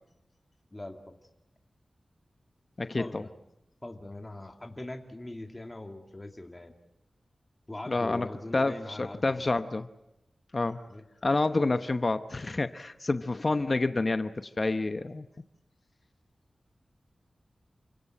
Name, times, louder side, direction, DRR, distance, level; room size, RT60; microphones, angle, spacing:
voice 1, 0.7-1.1 3.0-3.3 3.8-6.7 7.7-9.5 10.9-11.0, left 1 dB, 20° left, 4 dB, 2.4 m, -42 dB
voice 2, 2.8-3.3 7.9-8.3 8.5-9.9 10.5-10.8 11.2-15.3, left 2 dB, 45° left, 10 dB, 1.0 m, -28 dB
29.0 x 17.5 x 9.0 m, 0.86 s
wide cardioid pair, 65°, 0 cm